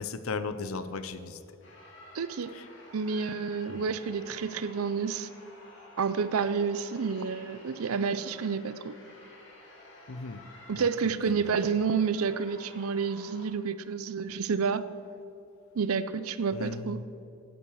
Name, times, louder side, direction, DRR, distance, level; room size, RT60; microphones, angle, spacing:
voice 1, 0.0-1.4 2.5-2.7 3.7-3.9 10.1-10.4 10.7-10.9 11.3-11.5 16.5-17.0, left 4 dB, 80° left, 13 dB, 0.6 m, -36 dB
sound 1, 1.6-13.5, left 1 dB, 60° left, 2.5 m, -52 dB
voice 2, 2.1-2.6 2.9-5.3 6.0-9.0 10.7-14.8 15.7-17.0, right 5 dB, 90° right, 14 dB, 0.5 m, -29 dB
10.5 x 8.9 x 6.4 m, 2.8 s
head